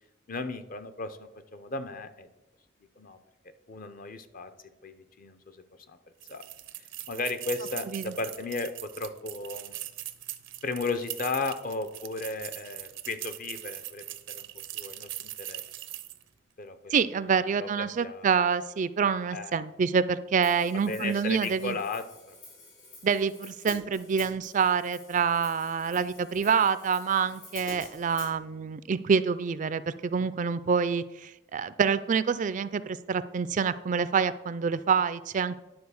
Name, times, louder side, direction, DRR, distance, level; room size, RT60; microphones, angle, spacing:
voice 1, 0.3-2.3 3.0-3.2 3.7-4.5 4.8-6.0 6.3-6.4 6.8-9.8 10.6-14.5 14.7-15.6 16.6-16.9 17.6-18.3 19.3-19.5 20.7-22.4, left 3 dB, 45° left, 10 dB, 0.7 m, -35 dB
sound 1, 6.2-16.3, right 15 dB, 85° right, 0.7 m, -41 dB
voice 2, 16.9-21.8 23.0-35.6, right 6 dB, 45° right, 15 dB, 0.4 m, -27 dB
Hi-hat, 20.4-28.3, left 3 dB, 85° left, 3.9 m, -48 dB
10.5 x 4.2 x 7.0 m, 1.0 s
head